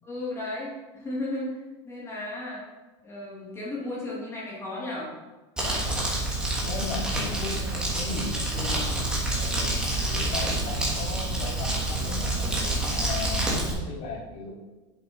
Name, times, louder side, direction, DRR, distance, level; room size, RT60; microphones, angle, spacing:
voice 1, 0.0-2.6 3.0-5.1 7.3-7.5, left 1 dB, 20° left, -6 dB, 3.1 m, -34 dB
Crumpling crinkling, 5.6-13.7, right 1 dB, 5° right, 2.8 m, -28 dB
voice 2, 6.7-9.0 9.3-12.5 13.0-14.5, left 3 dB, 50° left, -1 dB, 3.0 m, -36 dB
7.7 x 7.6 x 5.6 m, 1.2 s
supercardioid pair, 145°, 15 cm